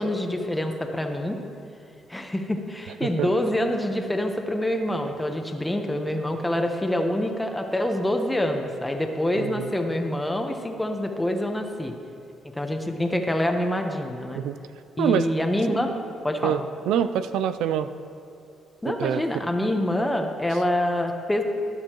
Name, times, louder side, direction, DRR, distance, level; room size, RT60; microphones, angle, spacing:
voice 1, 0.0-1.4 2.1-11.9 12.4-14.4 15.0-15.9 16.2-16.6 18.8-21.4, left 1 dB, 10° left, 4 dB, 1.0 m, -26 dB
voice 2, 16.4-17.9 19.0-19.2, right 9 dB, 90° right, 11 dB, 0.3 m, -25 dB
12.5 x 10.5 x 3.0 m, 2.5 s
cardioid pair, 90°, 0 cm